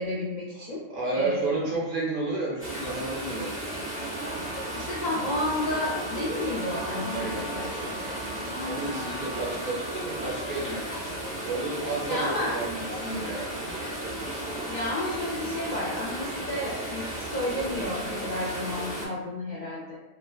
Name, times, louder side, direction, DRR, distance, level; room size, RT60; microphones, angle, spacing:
voice 1, 0.0-0.8 1.1-1.6 4.7-8.1 8.5-9.1 12.1-12.5 14.7-20.0, left 1 dB, 60° left, -7 dB, 0.5 m, -32 dB
voice 2, 0.9-3.5 7.0-7.4 8.5-10.8 11.4-12.7 13.0-13.6, right 2 dB, 55° right, -4 dB, 0.6 m, -31 dB
sound 1, 2.6-19.1, right 1 dB, 15° left, 0.7 m, -34 dB
Wind instrument woodwind instrument, 3.7-10.7, right 2 dB, 85° right, 1.0 m, -42 dB
3.1 x 2.1 x 2.2 m, 1.1 s
omnidirectional pair, 1.2 m